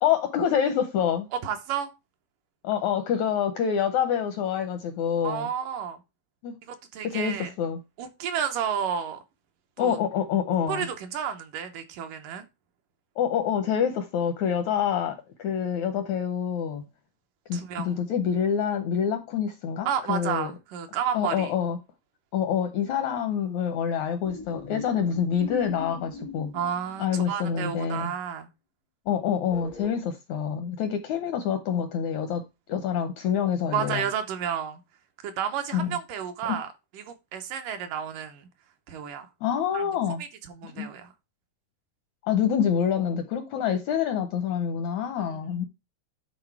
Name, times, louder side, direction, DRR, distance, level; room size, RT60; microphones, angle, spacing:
voice 1, 0.0-1.3 2.6-5.5 6.4-6.5 7.0-7.8 9.8-10.9 13.2-16.9 17.5-20.5 21.1-21.8 22.3-26.5 27.0-28.1 29.1-32.4 32.7-34.1 35.7-36.0 36.5-36.6 39.4-40.2 40.6-40.9 42.2-45.7, left 8 dB, 80° left, 1.7 m, -26 dB
voice 2, 1.4-1.9 5.2-6.0 6.7-7.5 8.0-9.2 9.8-10.0 10.7-12.5 17.5-18.0 19.9-21.5 26.5-28.5 33.7-34.8 35.2-38.5 38.9-39.3 39.7-39.8 40.5-41.1 45.2-45.4, right 8 dB, 75° right, 2.4 m, -31 dB
sound 1, 24.2-27.4 29.5-30.0, left 4 dB, 60° left, 0.4 m, -40 dB
10.0 x 3.9 x 4.6 m
omnidirectional pair, 4.1 m